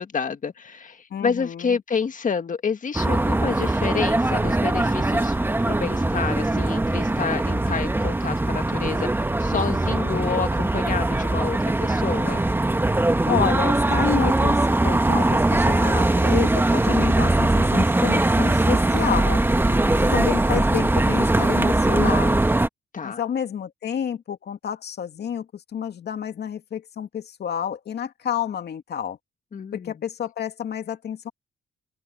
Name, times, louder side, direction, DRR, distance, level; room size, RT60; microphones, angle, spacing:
voice 1, 0.0-5.4 5.6-9.1 9.4-12.4 19.6-20.3 22.9-23.2 29.5-29.9, left 6 dB, 40° left, 1.8 m, -29 dB
voice 2, 1.1-1.8 13.3-19.4 20.1-22.4 23.0-29.2 29.7-31.3, left 8 dB, 55° left, 2.4 m, -29 dB
sound 1, 2.9-22.7, right 2 dB, 10° right, 1.1 m, -21 dB
open air
cardioid pair, 90°, 20 cm